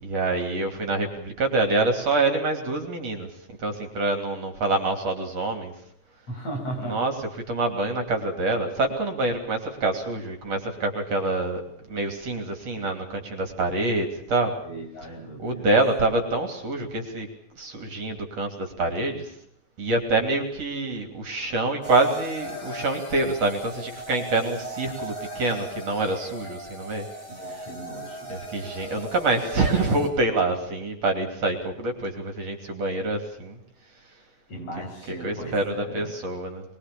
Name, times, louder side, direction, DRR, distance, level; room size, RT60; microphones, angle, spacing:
voice 1, 0.0-5.7 6.8-7.1 7.5-11.6 11.9-14.6 15.4-17.3 17.6-19.3 19.8-27.1 27.4-27.7 28.3-33.6 35.1-36.6, right 2 dB, 55° right, 5 dB, 4.1 m, -26 dB
voice 2, 6.3-7.0 14.6-15.7 27.3-28.3 34.5-36.1, right 1 dB, 50° left, 1 dB, 7.4 m, -36 dB
sound 1, 21.8-30.1, equal, 20° left, 6.3 m, -38 dB
23.0 x 22.5 x 6.9 m, 0.67 s
omnidirectional pair, 3.6 m